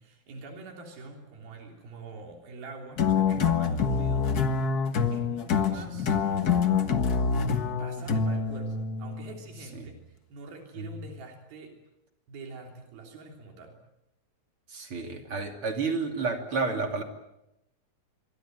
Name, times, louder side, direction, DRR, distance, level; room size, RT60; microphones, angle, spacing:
voice 1, 0.0-4.7 5.1-6.1 7.8-10.0 10.3-11.7 12.3-13.8, right 3 dB, 85° right, 2 dB, 5.2 m, -45 dB
sound 1, 3.0-9.4, left 6 dB, 70° left, 0.8 m, -26 dB
voice 2, 14.7-17.0, right 4 dB, 40° right, 4 dB, 3.3 m, -30 dB
27.0 x 23.5 x 7.8 m, 0.87 s
omnidirectional pair, 4.1 m